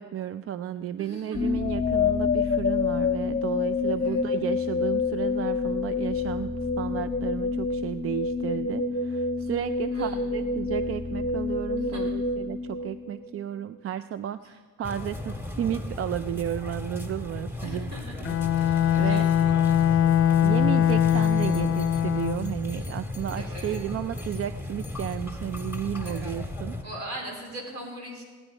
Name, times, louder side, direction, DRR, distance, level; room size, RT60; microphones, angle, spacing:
voice 1, 0.0-17.9 18.2-19.3 20.4-26.8, right 10 dB, 50° right, 13 dB, 0.4 m, -33 dB
voice 2, 1.0-1.4 4.0-4.2 9.9-10.2 11.8-12.1 14.4-14.5 17.6-18.2 18.5-19.8 23.2-23.8 26.0-26.3 26.8-28.2, right 1 dB, 65° right, 0 dB, 4.5 m, -41 dB
sound 1, 1.3-13.4, left 4 dB, 25° left, 0.8 m, -27 dB
sound 2, 14.8-26.8, left 2 dB, 5° right, 1.7 m, -35 dB
Bowed string instrument, 18.2-22.6, left 10 dB, 50° left, 0.4 m, -22 dB
18.5 x 9.8 x 5.0 m, 1.5 s
cardioid pair, 90°, 30 cm